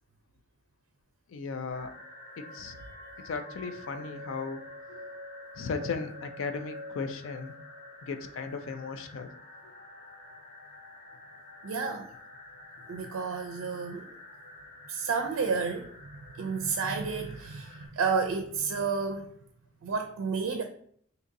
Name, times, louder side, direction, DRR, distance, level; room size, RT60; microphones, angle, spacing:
voice 1, 1.3-1.9 2.4-2.8 3.2-4.6 4.9-5.1 5.6-7.6 8.0-9.3, left 4 dB, 70° left, 0.4 m, -36 dB
sound 1, 1.7-17.9, left 1 dB, 50° left, 1.3 m, -48 dB
voice 2, 11.6-12.1 12.9-14.1 14.9-16.1 16.3-19.3 19.8-20.6, right 5 dB, 85° right, 0.4 m, -31 dB
2.7 x 2.6 x 3.8 m
head